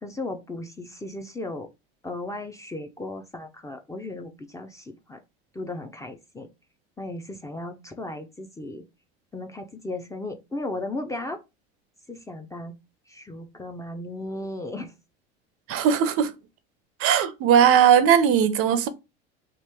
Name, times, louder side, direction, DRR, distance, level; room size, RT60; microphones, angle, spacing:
voice 1, 0.0-1.7 2.0-5.2 5.5-6.5 7.0-8.8 9.3-11.4 12.1-12.7 13.1-14.9, left 2 dB, 10° left, 0.4 m, -35 dB
voice 2, 15.7-16.3 17.0-18.9, right 8 dB, 50° right, 0.6 m, -18 dB
3.0 x 2.4 x 3.4 m
hypercardioid pair, 95°, 31 cm